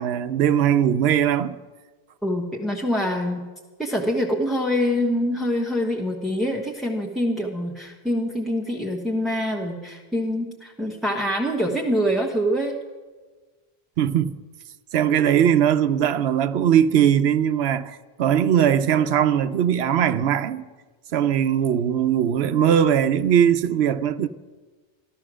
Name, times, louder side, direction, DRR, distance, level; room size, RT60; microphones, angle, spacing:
voice 1, 0.0-1.6 14.0-14.4 14.9-20.7 21.1-24.3, right 9 dB, 85° right, 0.9 m, -20 dB
voice 2, 2.2-3.4 3.8-12.7, equal, ahead, 1.2 m, -25 dB
14.5 x 13.5 x 6.2 m
omnidirectional pair, 1.1 m